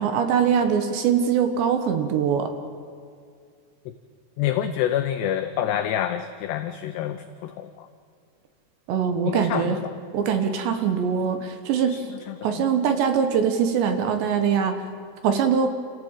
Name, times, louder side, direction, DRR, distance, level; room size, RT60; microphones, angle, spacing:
voice 1, 0.0-2.5 8.9-9.8 10.1-12.0 12.4-14.8 15.2-15.7, right 7 dB, 70° right, 7 dB, 3.2 m, -22 dB
voice 2, 4.4-7.9 9.3-10.0 11.9-12.8, left 10 dB, 90° left, 8 dB, 2.3 m, -28 dB
28.5 x 15.5 x 8.9 m, 2.3 s
omnidirectional pair, 5.9 m